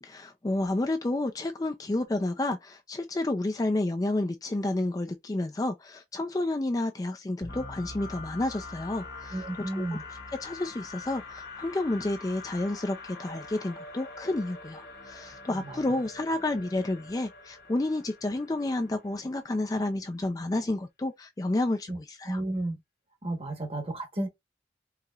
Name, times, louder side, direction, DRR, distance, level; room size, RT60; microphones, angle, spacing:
voice 1, 0.0-10.0 10.4-22.4, left 2 dB, 20° left, 0.3 m, -30 dB
sound 1, 7.4-19.2, left 3 dB, 60° left, 1.4 m, -44 dB
voice 2, 9.3-10.0 15.5-15.8 21.9-22.0 22.3-22.8 23.2-24.3, right 1 dB, 30° right, 1.1 m, -32 dB
4.7 x 2.8 x 2.3 m
head